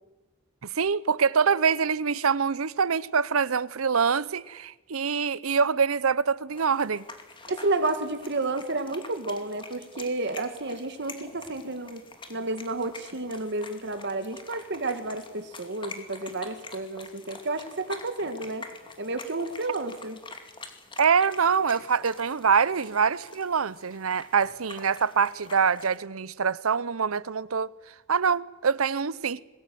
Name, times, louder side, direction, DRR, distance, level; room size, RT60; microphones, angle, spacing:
voice 1, 0.6-7.0 21.0-27.7 28.1-29.4, right 6 dB, 90° right, 0.8 m, -25 dB
sound 1, 6.5-26.0, left 3 dB, 25° left, 2.5 m, -46 dB
voice 2, 7.5-12.0 12.3-18.6 19.0-20.2, right 2 dB, 60° right, 1.8 m, -31 dB
22.5 x 19.5 x 9.3 m
head